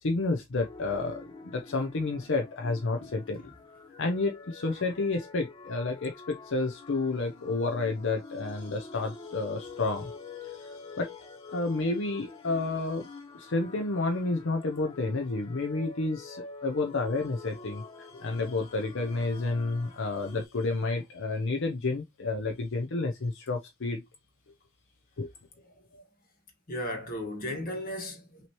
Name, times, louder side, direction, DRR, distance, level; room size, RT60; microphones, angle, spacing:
voice 1, 0.0-3.4 4.0-24.0 25.2-25.3, left 3 dB, 65° left, 0.7 m, -30 dB
sound 1, 0.6-20.4, left 4 dB, 25° left, 0.8 m, -47 dB
voice 2, 26.7-28.5, left 1 dB, 45° left, 1.6 m, -36 dB
6.0 x 3.0 x 2.9 m
head